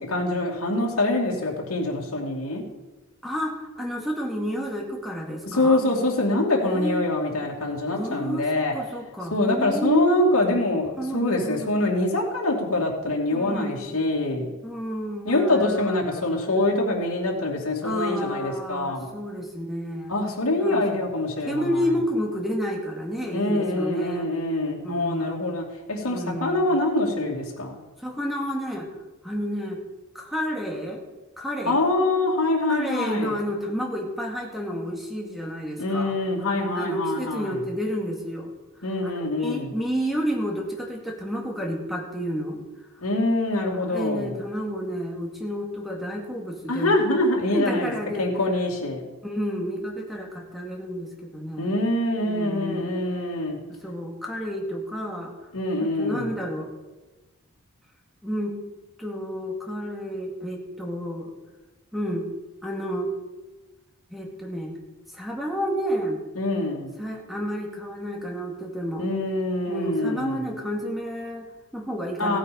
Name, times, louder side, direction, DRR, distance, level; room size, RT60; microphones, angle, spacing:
voice 1, 0.0-2.6 5.5-8.7 9.3-14.5 15.2-19.1 20.1-21.8 23.3-27.8 31.7-33.4 35.8-37.6 38.8-39.7 43.0-44.3 46.7-47.9 48.2-49.0 51.6-53.6 55.5-56.3 66.4-66.9 69.0-70.4 72.2-72.4, left 2 dB, 80° left, -2 dB, 2.5 m, -25 dB
voice 2, 3.2-5.8 6.6-7.1 7.9-10.1 11.0-11.8 13.3-13.9 14.6-16.5 17.8-20.1 20.6-21.1 21.5-24.3 24.8-25.5 26.1-26.7 28.0-28.9 29.2-29.8 30.1-31.0 31.4-31.8 32.7-36.2 36.7-38.5 39.0-42.6 43.8-47.0 47.5-48.3 49.2-51.7 52.2-52.9 53.8-55.3 55.8-56.7 58.2-58.6 59.0-61.3 61.9-62.3 62.6-63.1 64.1-64.7 65.1-66.2 67.0-69.1 69.7-72.4, equal, ahead, 0 dB, 2.2 m, -30 dB
15.5 x 8.9 x 5.2 m, 1.2 s
head